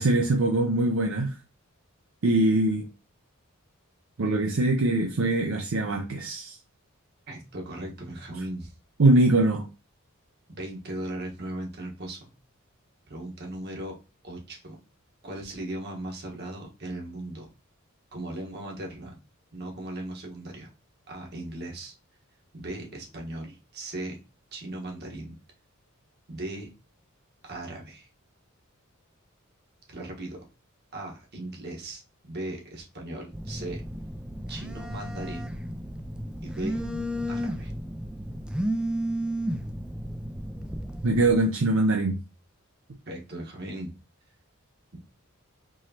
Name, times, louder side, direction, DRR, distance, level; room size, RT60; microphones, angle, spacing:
voice 1, 0.0-1.3 2.2-2.9 4.2-6.6 9.0-9.7 41.0-42.2, right 2 dB, 70° right, 0.6 m, -22 dB
voice 2, 7.3-8.7 10.6-12.3 13.1-14.0 14.2-14.8 15.2-17.5 18.1-19.1 19.5-20.7 21.1-21.9 22.5-24.2 24.5-25.4 26.3-26.7 27.4-28.1 29.9-30.4 30.9-33.8 34.5-35.6 36.4-36.8 37.3-37.7 43.1-43.9 44.9-45.0, right 1 dB, 50° right, 1.3 m, -37 dB
Telephone, 33.3-41.4, equal, 5° right, 0.3 m, -33 dB
4.6 x 3.0 x 2.8 m
head